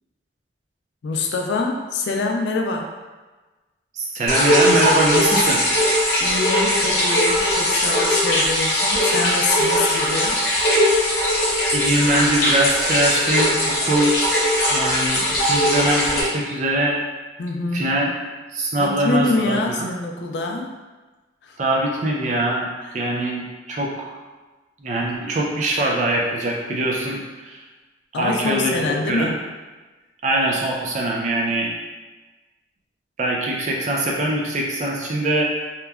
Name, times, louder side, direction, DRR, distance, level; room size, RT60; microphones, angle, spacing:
voice 1, 1.0-3.0 6.2-10.4 17.4-18.1 18.8-20.7 21.4-21.6 28.1-29.3, left 3 dB, 65° left, 3 dB, 0.3 m, -25 dB
voice 2, 3.9-5.6 11.7-14.2 14.7-17.0 17.7-18.1 18.5-19.9 21.6-22.7 22.9-24.1 24.8-27.6 28.2-28.8 29.1-29.3 30.2-31.7 33.2-35.4, right 1 dB, 40° right, -2 dB, 0.4 m, -22 dB
sound 1, 4.3-16.2, equal, 50° left, 0.8 m, -19 dB
2.9 x 2.2 x 2.3 m, 1.2 s
head